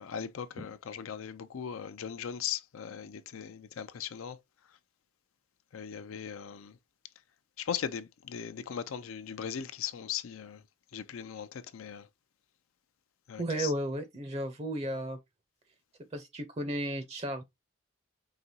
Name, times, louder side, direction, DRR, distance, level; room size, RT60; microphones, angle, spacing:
voice 1, 0.0-4.4 5.7-6.8 7.6-10.6 10.9-12.1 13.3-13.7, left 8 dB, 85° left, 0.4 m, -38 dB
voice 2, 13.4-15.2 16.1-17.4, right 1 dB, 30° right, 0.5 m, -34 dB
4.9 x 2.9 x 2.7 m
head